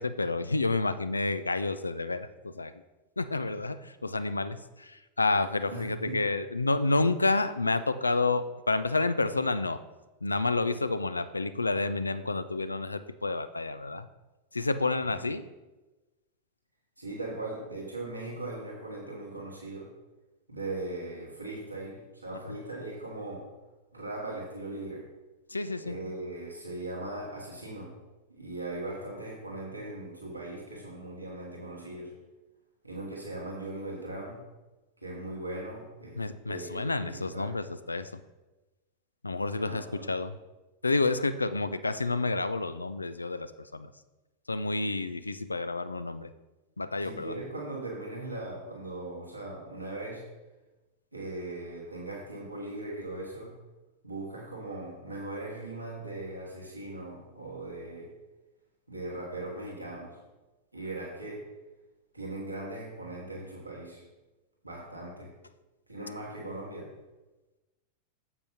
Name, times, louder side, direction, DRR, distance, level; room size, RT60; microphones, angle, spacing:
voice 1, 0.0-2.7 3.2-9.8 10.2-14.1 14.5-15.4 25.5-26.0 36.2-38.2 39.2-40.4 40.8-43.9 44.5-46.3 46.8-47.4, left 3 dB, 80° left, 12 dB, 0.4 m, -29 dB
voice 2, 5.7-6.2 15.0-15.3 17.0-19.9 20.5-23.5 23.9-25.1 25.8-27.9 28.3-32.1 32.8-34.4 35.0-36.2 36.5-37.6 39.6-40.1 47.0-50.3 51.1-53.5 54.0-58.1 58.9-60.2 60.7-61.5 62.1-64.0 64.6-65.3 65.9-66.9, right 2 dB, 85° right, -4 dB, 1.7 m, -39 dB
9.5 x 7.7 x 2.8 m, 1.1 s
figure-of-eight pair, 90°, 0 cm